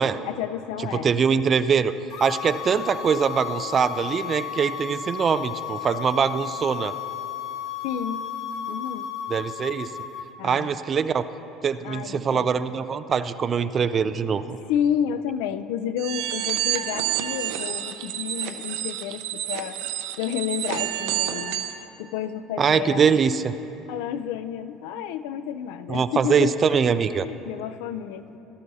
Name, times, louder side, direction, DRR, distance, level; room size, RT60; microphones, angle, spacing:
voice 1, 0.3-1.1 7.8-8.3 8.7-9.1 10.4-10.7 11.8-12.5 14.7-19.8 20.1-21.7 22.0-23.2 23.9-26.8 27.1-28.4, left 9 dB, 85° left, 12 dB, 0.4 m, -30 dB
voice 2, 0.9-1.9 2.2-7.0 9.3-9.9 10.4-11.2 11.6-14.6 22.6-23.5 25.9-27.3, right 6 dB, 25° right, 12 dB, 0.3 m, -23 dB
sound 1, 2.1-10.3, left 9 dB, 65° left, 1.2 m, -34 dB
sound 2, 16.0-21.8, right 12 dB, 80° right, 0.7 m, -29 dB
17.0 x 12.5 x 2.7 m, 2.9 s
cardioid pair, 155°, 0 cm